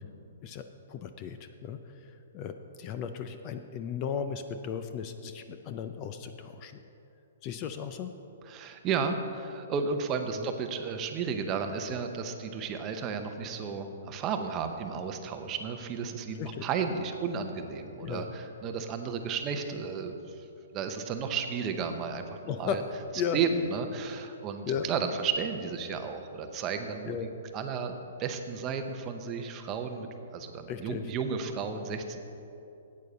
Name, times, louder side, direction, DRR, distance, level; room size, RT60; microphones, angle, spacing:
voice 1, 0.4-6.8 7.4-8.1 10.4-10.5 16.4-16.7 18.0-18.3 22.5-22.8 23.2-23.4 24.6-24.9 27.1-27.3 30.7-31.1, left 7 dB, 30° left, 8 dB, 0.5 m, -36 dB
voice 2, 8.4-20.5 20.7-22.8 23.3-27.2 27.5-30.1 30.3-32.2, right 5 dB, 25° right, 6 dB, 0.8 m, -33 dB
9.1 x 8.6 x 6.7 m, 2.8 s
hypercardioid pair, 155°, 0 cm